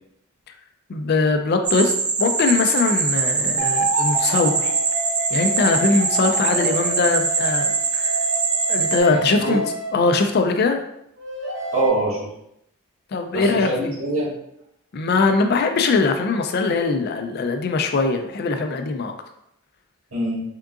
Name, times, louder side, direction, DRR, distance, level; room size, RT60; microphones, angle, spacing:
voice 1, 0.9-4.7 5.3-8.1 8.7-9.6 9.9-10.8 13.1-13.9 14.9-19.1, left 3 dB, 50° left, 6 dB, 0.4 m, -21 dB
sound 1, 1.7-9.0, right 4 dB, 20° right, 0.4 m, -23 dB
sound 2, 3.6-10.3 11.2-11.9, right 2 dB, 60° right, 0.8 m, -29 dB
voice 2, 9.0-9.7 11.7-12.3 13.3-14.3 20.1-20.4, right 1 dB, 90° right, -6 dB, 1.5 m, -24 dB
3.6 x 3.6 x 2.4 m, 0.78 s
head